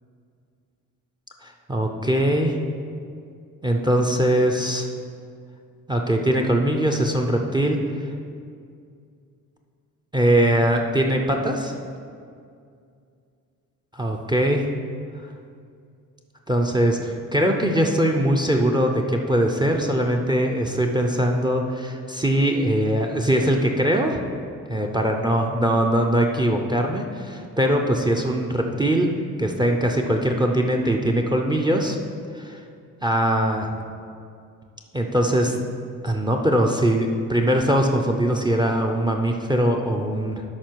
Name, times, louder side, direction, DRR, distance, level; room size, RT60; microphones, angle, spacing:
voice 1, 1.4-2.6 3.6-4.9 5.9-7.8 10.1-11.7 13.9-14.7 16.5-24.2 24.7-32.0 32.3-32.6 33.0-33.7 34.9-35.6 36.0-40.4, right 1 dB, 15° right, 3 dB, 0.5 m, -21 dB
12.5 x 5.1 x 4.6 m, 2.3 s
cardioid pair, 155°, 34 cm